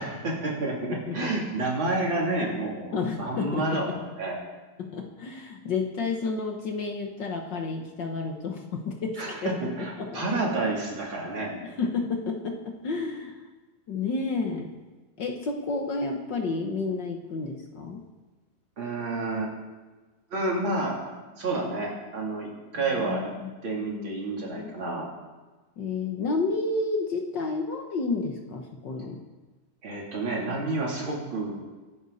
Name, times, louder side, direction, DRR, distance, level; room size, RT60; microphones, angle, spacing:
voice 1, 0.0-4.4 9.2-11.5 18.8-19.5 20.3-21.0 21.4-23.3 23.6-25.1 29.8-31.5, right 2 dB, 35° right, -3 dB, 3.8 m, -29 dB
voice 2, 0.9-1.3 2.9-3.9 4.8-10.4 11.6-13.4 13.9-14.8 15.2-18.0 22.9-24.7 25.8-29.2, left 4 dB, 65° left, 2 dB, 1.1 m, -31 dB
24.0 x 11.5 x 4.2 m, 1.2 s
omnidirectional pair, 3.8 m